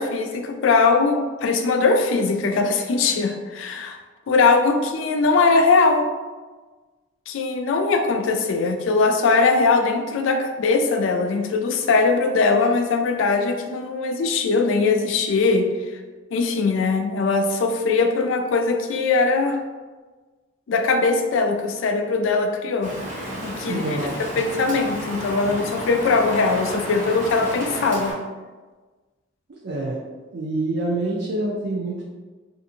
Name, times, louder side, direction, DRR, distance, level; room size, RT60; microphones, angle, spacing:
voice 1, 0.0-4.0 4.3-6.0 7.3-15.7 16.3-19.6 20.7-22.9 23.4-23.8 24.4-28.1, left 4 dB, 70° left, 5 dB, 0.3 m, -20 dB
Rain, 22.8-28.1, equal, 40° right, 1.0 m, -32 dB
voice 2, 23.6-24.4 29.5-30.0 30.3-32.0, right 2 dB, 60° right, -5 dB, 0.4 m, -27 dB
2.6 x 2.5 x 2.7 m, 1.3 s
head